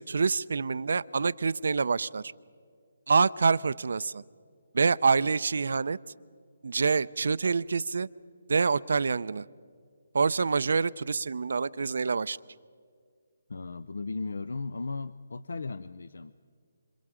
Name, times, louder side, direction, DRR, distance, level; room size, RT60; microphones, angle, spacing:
voice 1, 0.0-2.3 3.1-4.2 4.7-6.0 6.6-8.1 8.5-9.5 10.1-12.4, right 5 dB, 70° right, 18 dB, 0.5 m, -26 dB
voice 2, 13.5-16.3, left 3 dB, 75° left, 15 dB, 0.6 m, -36 dB
26.5 x 26.5 x 5.0 m, 2.1 s
hypercardioid pair, 155°, 0 cm